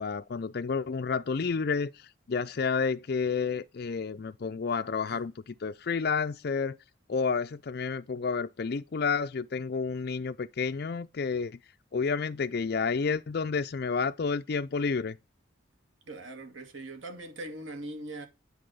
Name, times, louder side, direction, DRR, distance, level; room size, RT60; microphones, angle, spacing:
voice 1, 0.0-6.8 7.1-11.6 11.9-15.2, left 5 dB, 50° left, 0.4 m, -30 dB
voice 2, 16.1-18.3, right 2 dB, 80° right, 2.3 m, -41 dB
9.8 x 4.0 x 6.6 m
head